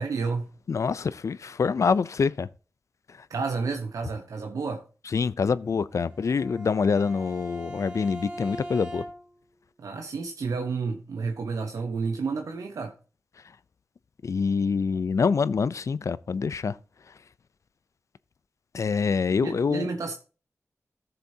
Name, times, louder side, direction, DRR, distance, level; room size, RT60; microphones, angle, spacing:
voice 1, 0.0-0.5 3.3-4.8 9.8-12.9 19.4-20.1, right 4 dB, 80° right, 1.0 m, -30 dB
voice 2, 0.7-2.5 5.1-9.0 14.2-16.8 18.7-19.9, left 5 dB, 65° left, 0.5 m, -25 dB
Bowed string instrument, 6.1-9.5, right 1 dB, 15° right, 2.4 m, -40 dB
14.0 x 6.9 x 2.8 m
cardioid pair, 50°, 6 cm